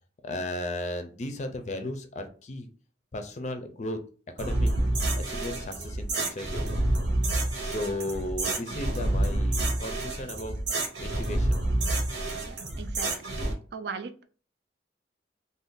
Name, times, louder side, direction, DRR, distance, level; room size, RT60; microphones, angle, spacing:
voice 1, 0.2-2.7 3.1-4.0 4.4-4.7 5.2-6.8 7.6-10.5 11.0-11.6, left 1 dB, 40° left, 7 dB, 0.4 m, -35 dB
sound 1, 4.4-13.5, right 1 dB, 75° right, 0.9 m, -28 dB
voice 2, 12.4-13.1 13.7-14.2, right 5 dB, 60° right, 8 dB, 0.4 m, -38 dB
2.6 x 2.2 x 3.6 m, 0.39 s
head